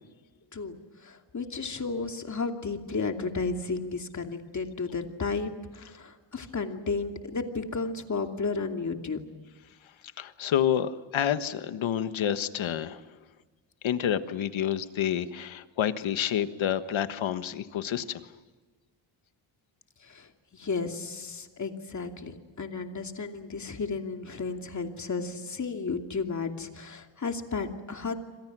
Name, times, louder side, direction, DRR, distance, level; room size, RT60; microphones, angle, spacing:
voice 1, 1.0-9.2 20.0-28.1, left 4 dB, 40° left, 4 dB, 2.7 m, -33 dB
voice 2, 10.2-13.0 13.8-18.2, left 9 dB, 90° left, 11 dB, 1.5 m, -28 dB
29.0 x 26.0 x 6.2 m, 1.4 s
wide cardioid pair, 120°, 45 cm